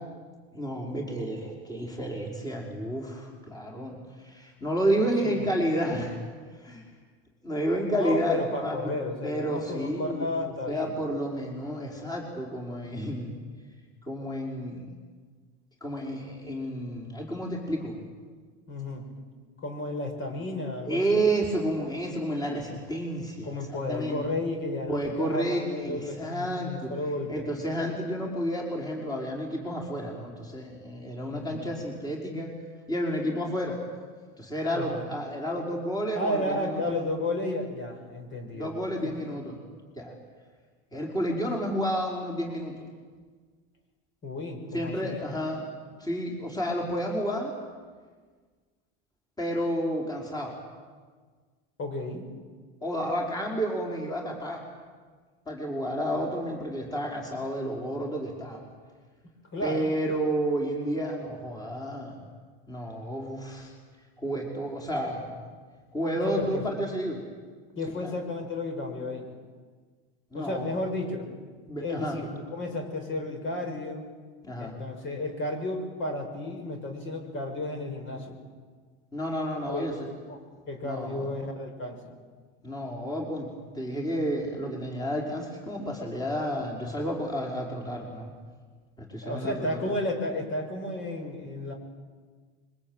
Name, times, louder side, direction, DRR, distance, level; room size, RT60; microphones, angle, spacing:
voice 1, 0.5-6.2 6.6-6.8 7.4-8.9 9.2-10.3 10.7-13.3 14.0-14.9 15.8-18.0 20.9-24.2 24.9-26.9 27.3-32.5 32.9-33.8 34.4-36.8 38.5-39.6 40.0-40.1 40.9-42.7 44.7-45.6 46.0-47.5 49.4-50.6 52.8-54.6 55.5-58.6 59.6-62.2 62.7-63.8 64.2-65.4 65.9-67.2 68.0-68.1 70.3-70.8 71.7-72.2 74.4-74.8 79.1-80.1 80.8-81.3 82.6-83.5 83.7-88.3 89.0-89.9, equal, 10° left, -1 dB, 5.4 m, -31 dB
voice 2, 8.0-11.0 18.7-19.1 19.6-21.2 23.4-27.5 31.3-31.6 34.7-35.1 36.1-38.7 39.0-39.1 44.2-45.2 51.8-52.3 59.5-59.9 66.2-66.6 67.7-69.3 70.3-71.3 71.8-74.1 74.6-78.4 79.7-80.4 80.7-82.1 89.2-91.7, left 2 dB, 40° left, 4 dB, 6.3 m, -33 dB
25.0 x 23.5 x 9.1 m, 1.5 s
supercardioid pair, 120°, 31 cm